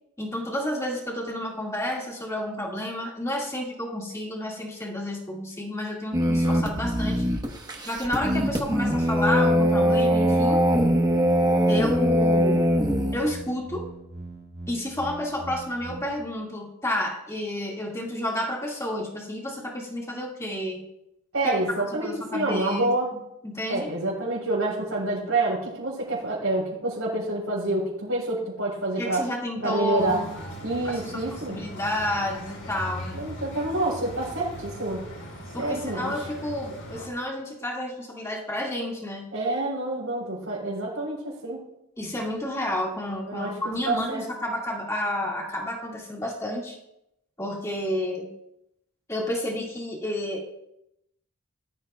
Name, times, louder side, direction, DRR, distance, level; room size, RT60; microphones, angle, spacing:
voice 1, 0.2-7.2 7.8-10.6 11.7-12.7 13.1-13.9 14.7-20.9 21.4-22.9 23.1-23.9 29.0-30.3 31.0-31.2 31.5-33.1 35.5-39.3 42.0-46.8 47.4-48.3 49.1-50.5, left 1 dB, 15° left, -2 dB, 2.0 m, -30 dB
sound 1, 6.1-13.2, equal, 15° right, 1.1 m, -22 dB
sound 2, 9.4-16.0, right 2 dB, 50° right, 1.9 m, -41 dB
voice 2, 21.3-23.1 23.7-29.2 29.6-30.2 30.6-31.6 33.1-35.1 35.6-36.2 39.3-41.6 43.3-43.6 43.8-44.2, right 2 dB, 70° right, -7 dB, 4.3 m, -27 dB
sound 3, 30.0-37.1, equal, 75° left, 4.0 m, -39 dB
18.5 x 13.5 x 2.4 m, 0.83 s
head